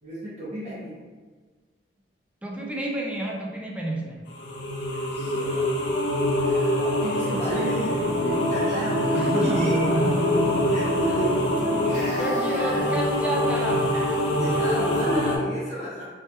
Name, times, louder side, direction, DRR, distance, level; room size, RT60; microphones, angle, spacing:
voice 1, 0.0-1.0 5.1-5.7 6.4-9.9 10.7-12.3 12.5-12.8 13.9-16.0, right 1 dB, 40° right, -9 dB, 0.7 m, -33 dB
voice 2, 2.4-4.3 6.7-7.2 9.1-11.0 12.2-13.9, right 1 dB, 5° right, -2 dB, 0.3 m, -30 dB
sound 1, 4.3-15.4, left 1 dB, 75° left, 0.4 m, -24 dB
sound 2, 7.3-15.2, equal, 10° left, 0.8 m, -36 dB
2.2 x 2.1 x 2.7 m, 1.4 s
head